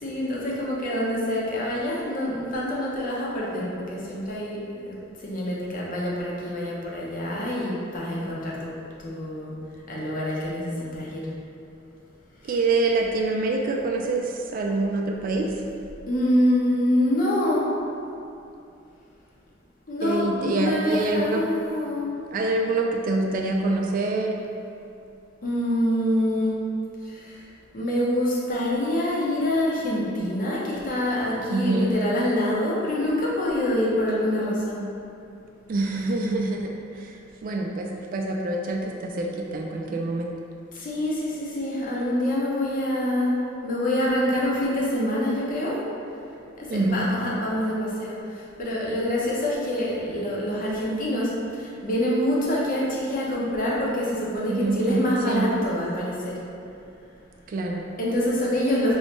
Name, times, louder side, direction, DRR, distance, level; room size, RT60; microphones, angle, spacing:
voice 1, 0.0-5.0 5.2-8.7 9.0-9.5 9.9-11.3 12.5-12.6 16.1-17.6 19.9-22.1 25.4-26.6 27.1-27.2 27.7-34.8 40.7-43.3 43.6-45.8 46.6-48.1 48.6-51.3 51.6-56.3 58.0-59.0, left 1 dB, 45° left, -5 dB, 0.8 m, -26 dB
voice 2, 12.4-15.5 20.0-21.4 22.3-24.3 31.5-31.9 35.7-40.3 46.5-47.1 54.5-55.5 57.5-57.8, right 2 dB, 45° right, 0 dB, 0.3 m, -26 dB
3.2 x 3.0 x 4.3 m, 2.6 s
head